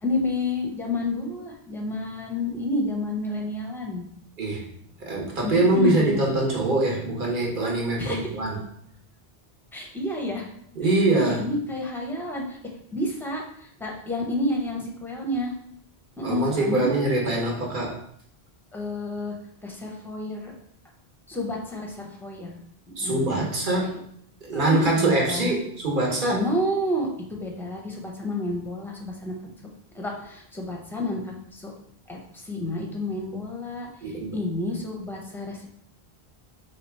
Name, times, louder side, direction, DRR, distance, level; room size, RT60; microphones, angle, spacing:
voice 1, 0.0-4.0 5.4-6.2 8.0-8.4 9.7-10.5 10.8-12.6 12.9-15.5 16.2-16.9 18.7-19.3 19.6-20.5 21.3-22.6 23.0-23.3 23.8-24.0 24.5-25.5 26.3-29.3 29.9-31.7 32.1-35.7, left 1 dB, 5° left, -1 dB, 0.6 m, -30 dB
voice 2, 4.4-4.7 5.0-8.6 10.7-11.4 16.2-18.0 23.0-24.0 24.5-26.4 34.0-34.3, right 2 dB, 55° right, -2 dB, 1.2 m, -23 dB
3.4 x 2.9 x 4.5 m, 0.68 s
omnidirectional pair, 1.1 m